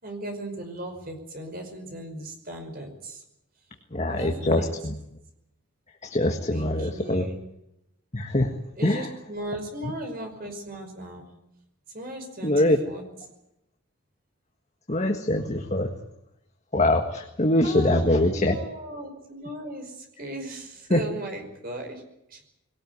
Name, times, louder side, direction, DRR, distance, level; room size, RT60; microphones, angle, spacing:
voice 1, 0.0-3.2 4.0-4.8 6.5-7.4 8.8-11.3 11.9-13.0 17.6-22.0 22.3-22.4, right 1 dB, 40° right, 4 dB, 5.4 m, -37 dB
voice 2, 3.9-4.9 6.0-7.3 8.1-8.5 8.8-9.1 12.4-12.8 14.9-15.9 16.7-18.6 20.9-21.0, left 1 dB, 30° left, 4 dB, 1.7 m, -23 dB
22.0 x 18.0 x 9.5 m, 0.83 s
head